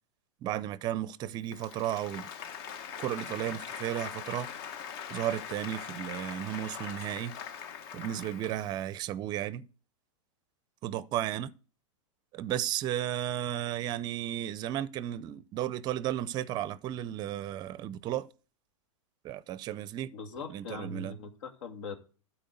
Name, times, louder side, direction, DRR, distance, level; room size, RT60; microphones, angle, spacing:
voice 1, 0.4-2.3 3.0-4.5 5.1-7.3 7.9-9.6 10.8-11.5 12.3-18.3 19.2-20.1 20.5-21.1, right 12 dB, 25° right, 0.6 m, -34 dB
Applause, 1.4-8.9, left 8 dB, 45° left, 1.2 m, -42 dB
voice 2, 20.1-22.0, left 3 dB, 70° left, 2.5 m, -41 dB
13.0 x 4.5 x 8.0 m
supercardioid pair, 150°, 17 cm